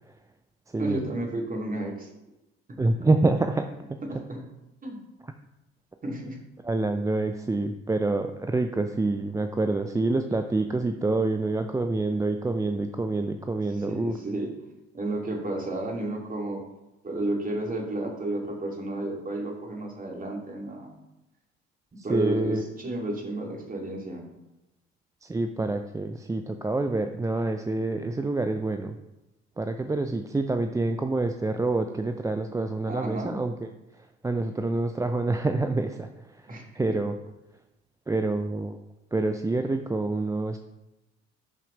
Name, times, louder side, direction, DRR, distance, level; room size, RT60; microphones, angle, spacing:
voice 1, 0.8-2.1 2.7-2.8 4.1-4.4 4.8-5.0 6.0-6.4 13.7-14.5 14.9-16.6 17.0-21.0 22.0-24.2 32.9-33.4 36.5-36.9, right 2 dB, 25° right, 0 dB, 2.5 m, -32 dB
voice 2, 2.8-3.7 6.6-14.2 22.0-22.6 25.2-28.9 29.6-33.7 34.2-36.1 36.4-37.2 38.1-38.8 39.1-40.6, right 2 dB, 10° right, 7 dB, 0.5 m, -27 dB
11.0 x 5.8 x 3.1 m, 0.96 s
figure-of-eight pair, 55°, 32 cm